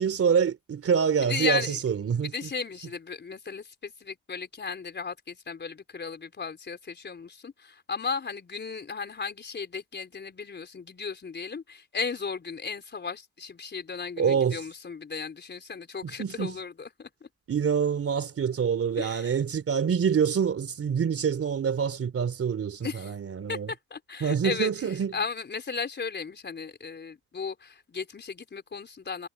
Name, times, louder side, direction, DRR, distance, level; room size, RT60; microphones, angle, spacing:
voice 1, 0.0-2.3 14.2-14.6 16.0-16.6 17.5-23.7 24.2-25.1, right 7 dB, 50° right, 3.1 m, -26 dB
voice 2, 1.2-1.8 2.2-17.3 18.4-18.5 19.0-19.4 22.8-23.1 23.5-24.7 25.1-29.3, left 5 dB, 35° left, 4.3 m, -35 dB
cardioid pair, 90°, 30 cm